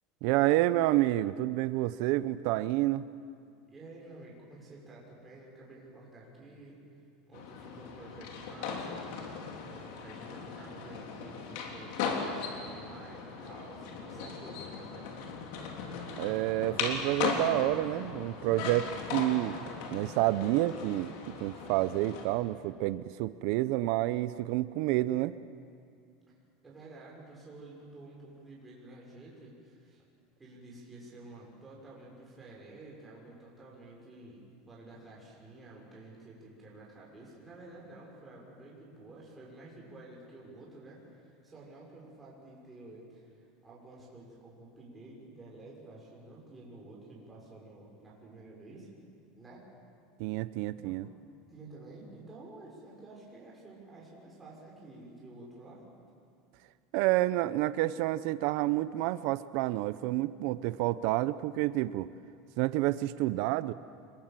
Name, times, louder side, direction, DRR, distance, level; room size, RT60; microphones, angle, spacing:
voice 1, 0.2-3.1 16.2-19.6 19.9-21.1 21.4-25.3 50.2-51.1 56.9-62.1 62.6-63.7, right 16 dB, 60° right, 15 dB, 0.6 m, -29 dB
voice 2, 3.7-6.8 7.3-9.1 9.5-15.1 26.6-30.0 30.4-48.9 49.3-49.7 50.7-51.0 51.5-55.9 59.0-59.1, right 2 dB, 15° right, -4 dB, 6.1 m, -51 dB
sound 1, 7.3-22.2, left 5 dB, 70° left, 3.7 m, -38 dB
26.5 x 22.5 x 7.6 m, 2.4 s
supercardioid pair, 150°, 0 cm